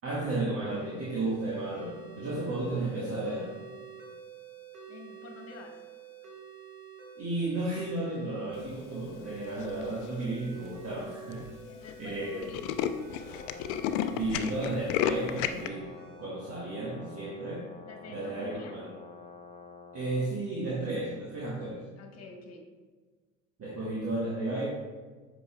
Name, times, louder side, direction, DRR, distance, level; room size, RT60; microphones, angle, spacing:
voice 1, 0.0-3.5 7.1-11.4 12.0-12.5 14.1-15.9 16.2-17.7 18.1-18.9 19.9-21.8 23.6-24.7, right 2 dB, 35° right, -6 dB, 1.6 m, -33 dB
sound 1, 0.7-16.3, right 6 dB, 70° right, 1.5 m, -50 dB
voice 2, 4.9-5.7 11.6-12.8 17.8-18.8 22.0-22.6, left 3 dB, 40° left, 2 dB, 1.4 m, -48 dB
Tools, 9.6-10.0 10.6-10.7 11.0-11.1 11.3-11.5 11.8-11.9 12.2-15.7, left 10 dB, 60° left, 0.5 m, -31 dB
Brass instrument, 13.2-20.3, left 4 dB, 15° left, 1.0 m, -49 dB
8.2 x 5.3 x 2.3 m, 1.4 s
hypercardioid pair, 70°, 39 cm